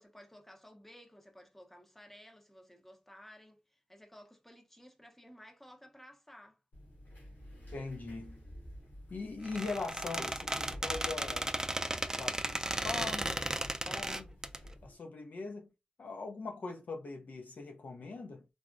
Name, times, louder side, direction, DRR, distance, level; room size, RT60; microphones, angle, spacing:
voice 1, 0.0-6.6, equal, 10° left, 0.8 m, -56 dB
sound 1, 6.7-14.9, equal, 90° left, 1.5 m, -51 dB
voice 2, 7.7-8.4 9.1-11.6 12.0-14.4 14.8-15.7 16.0-18.4, left 3 dB, 70° left, 0.6 m, -41 dB
Squeak, 9.4-14.6, right 1 dB, 20° right, 0.4 m, -35 dB
3.4 x 2.0 x 2.5 m
cardioid pair, 50°, 3 cm